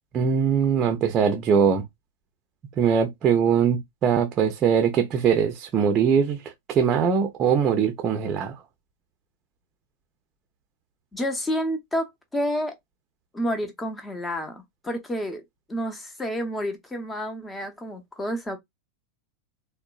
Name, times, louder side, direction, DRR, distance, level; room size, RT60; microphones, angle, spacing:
voice 1, 0.1-1.8 2.8-8.5, right 7 dB, 30° right, 0.6 m, -22 dB
voice 2, 11.1-12.7 13.3-15.4 15.7-18.6, equal, 10° left, 0.8 m, -29 dB
3.6 x 2.2 x 2.4 m
figure-of-eight pair, 90°, 0 cm